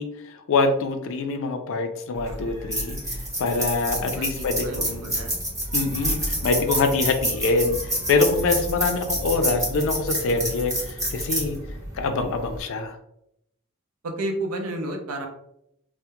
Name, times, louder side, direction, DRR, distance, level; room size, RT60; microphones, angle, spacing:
voice 1, 0.0-3.0 3.4-5.1 5.7-11.6 11.9-13.0, left 3 dB, 60° left, 6 dB, 0.4 m, -25 dB
sound 1, 2.2-12.6, right 1 dB, 15° right, 0.8 m, -29 dB
voice 2, 4.1-5.3 14.0-15.3, right 1 dB, 75° right, 3 dB, 0.5 m, -31 dB
2.8 x 2.0 x 2.2 m, 0.77 s
head